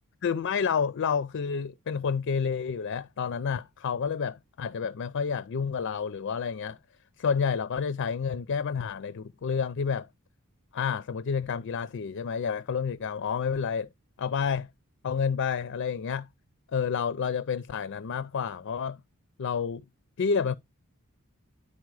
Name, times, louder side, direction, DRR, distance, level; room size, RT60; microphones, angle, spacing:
voice 1, 0.2-6.8 7.2-10.1 10.7-13.9 14.2-14.7 15.0-16.3 16.7-19.0 19.4-19.8 20.2-20.6, left 6 dB, 60° left, 0.4 m, -29 dB
10.5 x 4.2 x 4.7 m
head